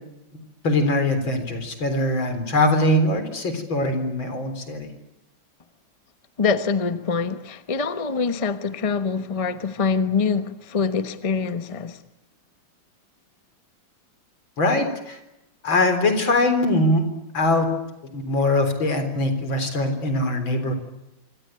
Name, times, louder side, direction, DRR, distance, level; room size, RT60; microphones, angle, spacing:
voice 1, 0.6-4.9 14.6-15.2 15.6-17.0 17.3-17.7 18.1-20.7, left 1 dB, 80° left, 4.6 m, -22 dB
voice 2, 6.4-12.0, left 5 dB, 20° left, 1.0 m, -24 dB
25.5 x 25.5 x 9.0 m
omnidirectional pair, 2.1 m